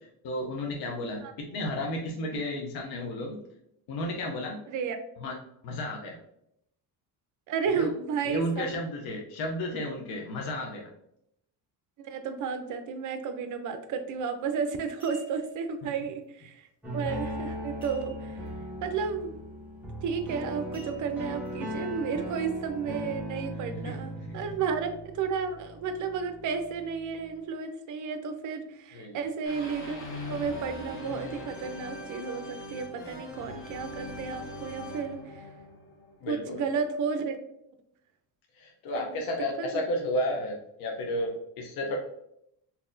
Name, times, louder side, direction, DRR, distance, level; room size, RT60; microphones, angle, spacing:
voice 1, 0.2-3.4 3.9-4.6 5.2-5.4 5.6-6.2 7.7-7.9 8.2-10.9 15.8-15.9 23.8-24.5 28.9-29.2 36.2-36.6 38.5-42.0, left 1 dB, 60° left, 1 dB, 0.7 m, -33 dB
voice 2, 7.5-8.7 12.0-16.7 16.9-18.4 18.8-19.3 20.0-35.5 36.3-37.4 38.9-39.2 39.6-39.8, right 6 dB, 45° right, 8 dB, 0.5 m, -32 dB
sound 1, 14.1-14.3 14.8-15.6 17.8-18.5 18.8-18.9 19.4-19.6 20.7-21.5 22.1-22.2, left 1 dB, 10° left, 1.3 m, -54 dB
sound 2, 16.8-27.3, equal, 5° right, 0.8 m, -38 dB
sound 3, 29.5-36.4, left 1 dB, 30° left, 0.9 m, -41 dB
4.0 x 2.8 x 2.5 m, 0.75 s
cardioid pair, 155°, 42 cm